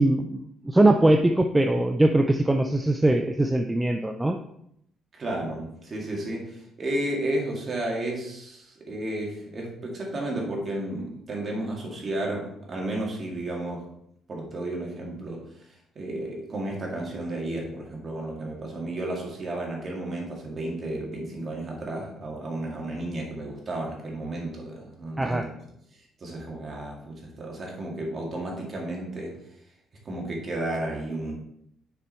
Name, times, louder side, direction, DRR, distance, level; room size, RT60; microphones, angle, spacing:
voice 1, 0.0-4.4 25.2-25.4, right 1 dB, 10° right, 5 dB, 0.4 m, -21 dB
voice 2, 5.1-13.9 14.3-15.5 16.0-25.5 25.9-29.4 30.0-31.3, right 1 dB, 35° right, -1 dB, 2.1 m, -32 dB
6.8 x 4.8 x 4.4 m, 0.75 s
cardioid pair, 125°, 0 cm